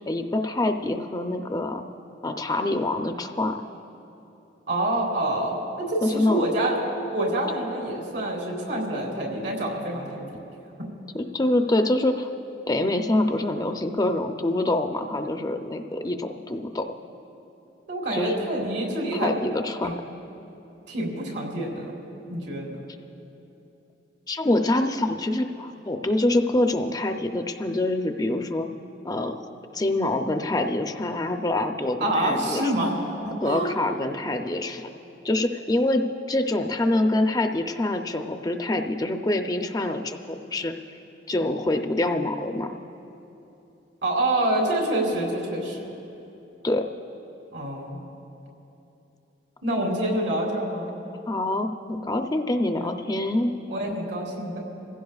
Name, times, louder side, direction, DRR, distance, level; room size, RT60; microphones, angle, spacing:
voice 1, 0.1-1.8 2.2-3.6 6.0-6.5 11.1-12.3 12.7-16.9 18.1-18.3 19.1-19.9 24.3-28.7 29.0-29.4 29.7-32.9 33.4-34.9 35.2-40.7 41.3-42.7 46.6-46.9 51.3-53.5, left 1 dB, 20° left, 5 dB, 0.5 m, -25 dB
voice 2, 4.7-6.8 7.1-10.3 17.9-19.3 19.8-20.0 20.9-22.0 22.3-22.8 32.0-33.8 44.0-45.8 47.5-48.0 49.6-50.9 52.7-52.9 53.7-54.6, right 1 dB, 85° right, -2 dB, 3.6 m, -27 dB
28.0 x 16.0 x 2.4 m, 2.9 s
head